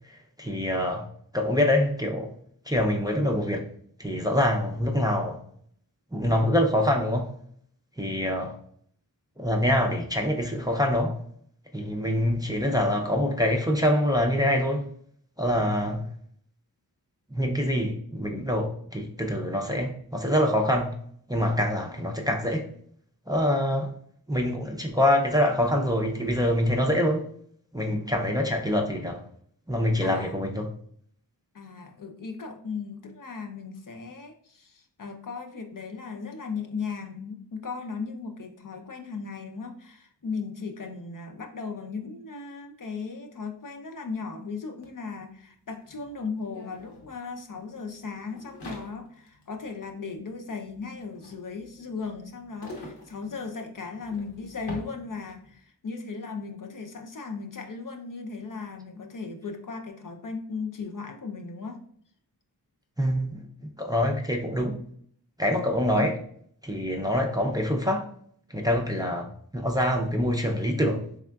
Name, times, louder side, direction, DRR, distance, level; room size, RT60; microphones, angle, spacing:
voice 1, 0.1-1.1 1.3-2.3 2.7-3.7 4.0-5.4 6.1-7.3 8.0-8.6 9.4-11.2 11.7-14.9 15.4-16.1 17.3-20.9 21.3-22.7 23.3-23.9 24.3-27.3 27.7-29.2 29.7-30.7 63.0-63.4 63.8-64.8 65.4-66.2 66.6-68.1 68.5-71.0, left 1 dB, 10° right, 0.5 m, -25 dB
voice 2, 30.0-30.5 31.5-61.8 66.0-66.1, left 4 dB, 50° left, 0.6 m, -37 dB
sound 1, 44.8-44.9 45.1-55.6, left 1 dB, 80° left, 0.9 m, -46 dB
3.5 x 3.4 x 2.3 m
wide cardioid pair, 45°, 40 cm